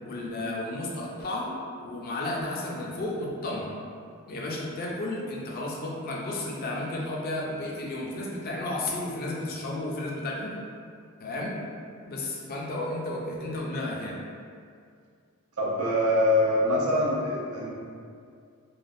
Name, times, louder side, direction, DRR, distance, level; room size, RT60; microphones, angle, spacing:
voice 1, 0.0-1.5 1.8-3.7 4.3-10.5 11.2-11.6 12.1-14.2, left 2 dB, 45° left, -2 dB, 0.4 m, -33 dB
voice 2, 15.6-17.7, left 1 dB, 85° right, -4 dB, 0.6 m, -24 dB
3.3 x 2.1 x 2.5 m, 2.2 s
head